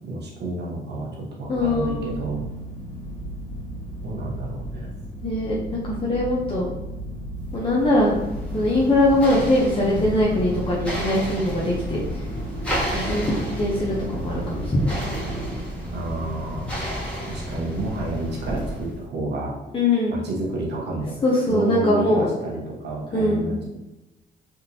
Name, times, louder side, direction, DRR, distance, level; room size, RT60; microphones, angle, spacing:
voice 1, 0.0-1.1 1.4-2.4 4.0-4.9 15.9-16.7 17.3-19.5 20.1-21.1 21.5-23.5, right 2 dB, 60° right, -3 dB, 1.1 m, -30 dB
sound 1, 1.5-15.5, right 1 dB, 75° left, 1.4 m, -35 dB
voice 2, 1.5-2.2 5.2-6.7 7.5-8.1 8.5-12.0 12.9-15.1 19.7-20.2 21.2-22.3 23.1-23.5, left 1 dB, 25° left, -5 dB, 0.7 m, -22 dB
sound 2, 7.5-19.0, equal, 5° left, 1.2 m, -32 dB
3.6 x 2.5 x 2.8 m, 0.99 s
cardioid pair, 90°, 20 cm